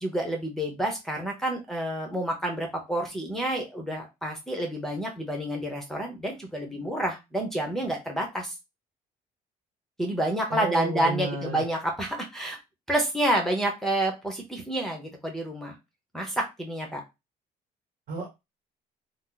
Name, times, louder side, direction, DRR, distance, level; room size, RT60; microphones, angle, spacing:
voice 1, 0.0-8.5 10.0-12.6 12.9-15.8 16.1-17.0, right 1 dB, ahead, 0.8 m, -29 dB
voice 2, 10.5-11.6 18.1-18.3, right 4 dB, 60° right, 1.3 m, -31 dB
2.7 x 2.0 x 3.8 m
cardioid pair, 110°, 17 cm